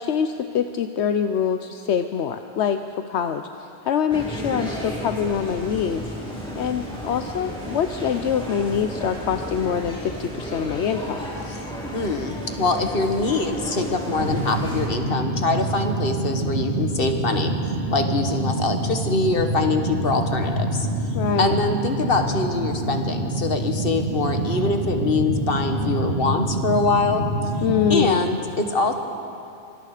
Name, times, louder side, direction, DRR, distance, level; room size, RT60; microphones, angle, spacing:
voice 1, 0.0-6.1 6.5-11.3 21.1-21.5 27.6-28.2, left 8 dB, 80° left, 8 dB, 1.0 m, -24 dB
sound 1, 4.1-14.9, equal, 5° left, 4.6 m, -33 dB
voice 2, 11.9-17.5 17.9-20.9 21.4-27.2 27.9-28.9, left 3 dB, 55° left, 5 dB, 1.7 m, -24 dB
sound 2, 14.2-28.0, right 2 dB, 80° right, 2.5 m, -26 dB
26.0 x 24.5 x 5.0 m, 2.6 s
omnidirectional pair, 1.1 m